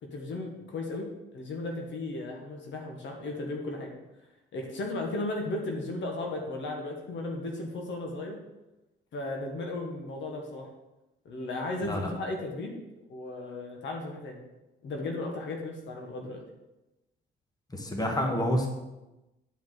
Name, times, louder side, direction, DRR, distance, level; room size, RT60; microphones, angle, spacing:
voice 1, 0.0-3.9 4.5-8.4 9.1-10.7 11.2-12.8 13.1-14.4 14.8-16.4, left 2 dB, 70° left, 1 dB, 1.6 m, -35 dB
voice 2, 17.7-18.7, equal, 20° left, 2 dB, 1.5 m, -28 dB
9.8 x 5.2 x 4.1 m, 1.0 s
cardioid pair, 90°, 20 cm